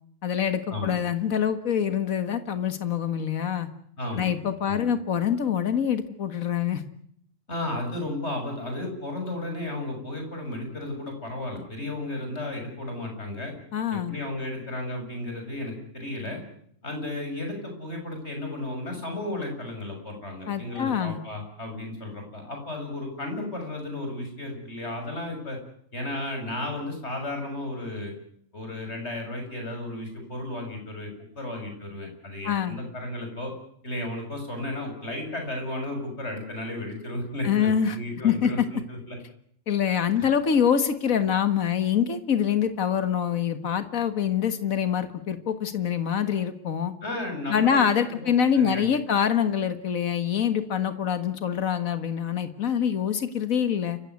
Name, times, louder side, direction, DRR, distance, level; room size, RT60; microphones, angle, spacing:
voice 1, 0.2-3.7 4.2-6.8 13.7-14.1 20.5-21.2 32.4-32.8 37.4-38.0 38.2-38.7 39.7-46.9 47.5-54.0, left 8 dB, 80° left, 10 dB, 2.0 m, -25 dB
voice 2, 4.0-4.3 4.7-4.9 7.5-13.5 13.9-16.4 16.8-25.6 25.9-28.1 28.5-31.1 31.4-33.5 33.8-39.2 40.2-40.3 47.0-48.8 50.8-50.9, left 1 dB, 55° left, 3 dB, 7.8 m, -34 dB
29.0 x 16.0 x 9.6 m, 0.66 s
omnidirectional pair, 1.4 m